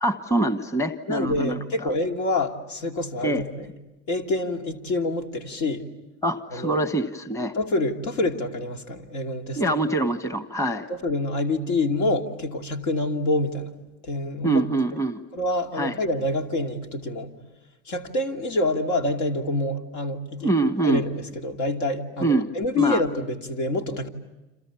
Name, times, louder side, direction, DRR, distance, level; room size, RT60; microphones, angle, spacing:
voice 1, 0.0-1.9 3.2-3.4 6.2-7.5 9.5-10.9 14.4-15.2 15.8-15.9 20.4-21.0 22.2-22.5 22.8-23.0, right 2 dB, 10° left, 10 dB, 1.3 m, -24 dB
voice 2, 1.1-3.7 4.1-5.9 6.5-6.8 7.5-9.6 10.9-13.7 14.0-14.7 15.3-17.4 17.9-20.5 20.8-24.1, left 2 dB, 65° left, 4 dB, 2.8 m, -27 dB
29.5 x 27.5 x 7.1 m, 1.0 s
hypercardioid pair, 90°, 38 cm